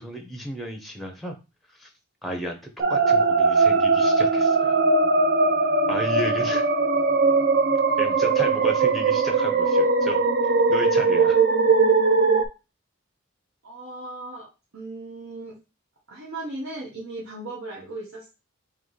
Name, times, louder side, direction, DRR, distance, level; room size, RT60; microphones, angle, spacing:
voice 1, 0.0-1.4 1.7-1.9 2.2-2.6 2.9-4.8 5.9-6.6 8.0-10.2 10.7-11.4, equal, ahead, 3 dB, 0.6 m, -33 dB
sound 1, 2.8-12.5, right 4 dB, 50° right, 0.5 m, -20 dB
voice 2, 13.6-14.5 14.7-15.6 16.1-18.3, right 2 dB, 75° right, -5 dB, 1.1 m, -37 dB
3.7 x 2.9 x 3.9 m, 0.28 s
head